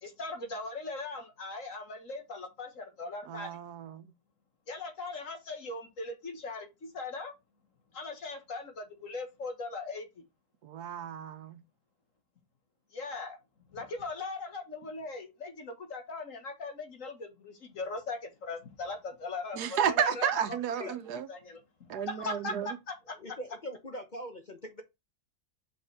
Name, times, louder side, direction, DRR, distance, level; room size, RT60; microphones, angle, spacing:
voice 1, 0.0-3.6 4.7-6.7 6.9-7.3 7.9-10.1 12.9-13.4 13.7-20.6 20.9-21.0 21.3-23.2, left 3 dB, 55° left, 1.9 m, -39 dB
voice 2, 3.3-4.0 10.6-11.6 19.5-21.3 21.9-22.7, right 8 dB, 80° right, 1.4 m, -32 dB
voice 3, 23.2-24.8, equal, 35° left, 0.8 m, -42 dB
5.8 x 5.3 x 3.4 m
omnidirectional pair, 1.7 m